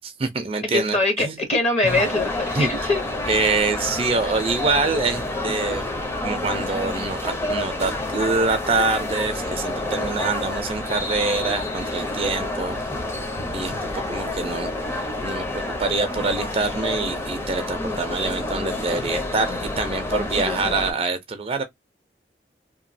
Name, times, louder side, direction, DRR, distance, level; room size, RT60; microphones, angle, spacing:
voice 1, 0.0-1.4 1.8-2.0 2.5-2.9 3.3-5.8 6.2-12.8 13.5-21.6, right 3 dB, 30° right, 0.4 m, -25 dB
voice 2, 0.7-3.0, left 2 dB, 35° left, 0.9 m, -22 dB
sound 1, 1.8-20.9, left 2 dB, 15° left, 0.6 m, -28 dB
2.9 x 2.2 x 2.6 m
head